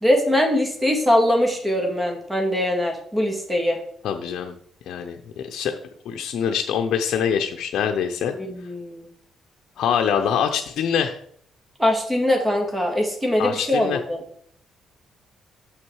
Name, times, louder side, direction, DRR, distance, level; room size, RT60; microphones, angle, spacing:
voice 1, 0.0-3.8 8.3-9.1 11.8-14.2, left 1 dB, 15° right, 2 dB, 2.0 m, -22 dB
voice 2, 4.0-4.5 4.9-5.7 6.1-8.3 9.8-11.2 13.4-14.0, left 8 dB, 75° left, 4 dB, 0.6 m, -24 dB
6.4 x 5.9 x 4.7 m, 0.62 s
cardioid pair, 90°, 0 cm